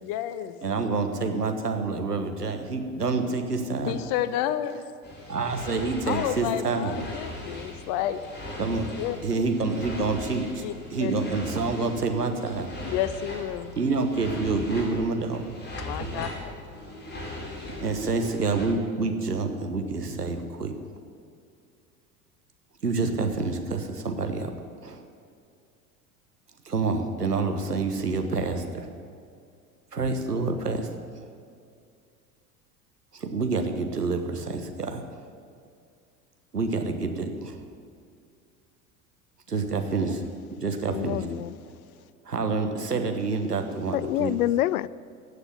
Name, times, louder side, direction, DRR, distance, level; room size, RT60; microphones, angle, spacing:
voice 1, 0.0-0.5 3.8-4.8 6.1-8.2 9.0-9.2 10.6-10.7 11.0-11.1 12.8-13.8 15.8-16.5, left 11 dB, 45° left, 13 dB, 1.0 m, -30 dB
voice 2, 0.6-4.0 5.3-7.0 8.6-8.9 9.2-10.6 10.9-12.7 13.7-15.4 16.0-16.3 17.8-20.7 22.8-24.5 24.8-25.0 26.6-28.9 29.9-31.3 33.1-35.3 36.5-37.7 39.5-41.3 42.2-44.4, right 3 dB, 85° right, 6 dB, 1.3 m, -28 dB
sound 1, 5.0-18.7, left 2 dB, 20° left, 4.6 m, -39 dB
voice 3, 40.9-41.5 43.9-44.9, left 14 dB, 70° left, 20 dB, 0.5 m, -26 dB
16.0 x 6.7 x 9.1 m, 2.4 s
figure-of-eight pair, 75°, 46 cm